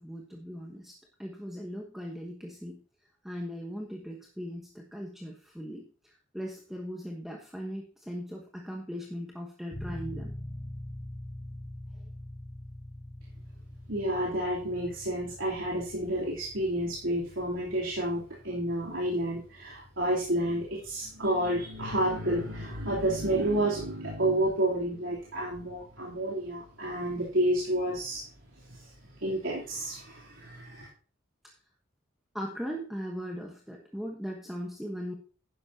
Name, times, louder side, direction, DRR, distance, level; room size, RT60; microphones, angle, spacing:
voice 1, 0.0-2.8 3.2-10.3 32.3-35.1, equal, ahead, -1 dB, 1.2 m, -39 dB
sound 1, 9.7-24.1, left 1 dB, 35° left, 2.1 m, -45 dB
voice 2, 13.9-28.2 28.7-28.8 29.2-30.9, right 1 dB, 80° right, -6 dB, 3.2 m, -30 dB
11.5 x 10.5 x 2.8 m, 0.38 s
head